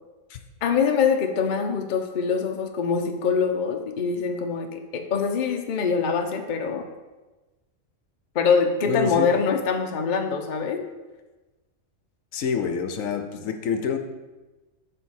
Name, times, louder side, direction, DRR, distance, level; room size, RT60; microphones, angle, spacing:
voice 1, 0.6-6.9 8.3-10.9, left 5 dB, 45° left, 5 dB, 0.7 m, -24 dB
voice 2, 8.8-9.4 12.3-14.0, left 6 dB, 75° left, 5 dB, 1.1 m, -27 dB
8.8 x 3.4 x 6.4 m, 1.2 s
omnidirectional pair, 1.4 m